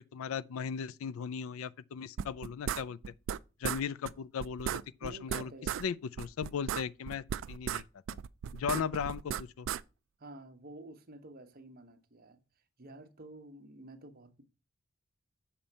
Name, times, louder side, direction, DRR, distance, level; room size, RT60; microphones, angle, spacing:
voice 1, 0.1-3.0 3.6-5.5 5.8-7.8 8.5-9.7, left 7 dB, 80° left, 0.4 m, -37 dB
sound 1, 2.2-3.4 3.6-3.8 4.1-4.2 4.4-5.8 6.2-9.8, right 9 dB, 65° right, 0.3 m, -35 dB
voice 2, 5.0-5.8 8.6-9.1 10.2-12.4 12.8-14.4, right 1 dB, 45° right, 0.9 m, -50 dB
7.1 x 4.3 x 5.2 m
head